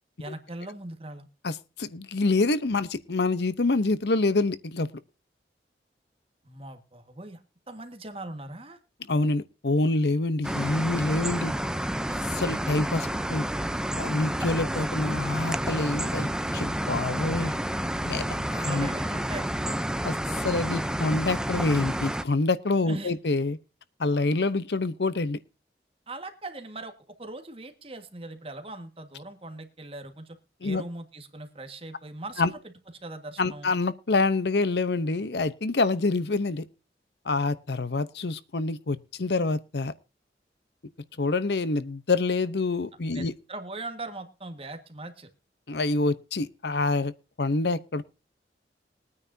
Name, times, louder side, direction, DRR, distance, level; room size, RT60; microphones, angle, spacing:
voice 1, 0.2-1.3 6.4-7.4 7.7-8.8 18.7-19.5 22.9-23.1 26.1-32.7 33.0-33.7 43.1-45.3, right 2 dB, 30° right, 1.7 m, -40 dB
voice 2, 1.4-4.9 9.1-11.5 12.3-13.4 14.0-17.5 18.0-18.9 20.0-23.6 24.0-25.4 30.6-30.8 32.4-32.5 33.4-36.7 37.3-39.9 41.2-43.3 45.7-47.1 47.4-48.0, left 3 dB, 75° left, 0.8 m, -26 dB
sound 1, 10.4-22.2, right 1 dB, 5° right, 0.6 m, -30 dB
21.5 x 9.6 x 2.7 m
head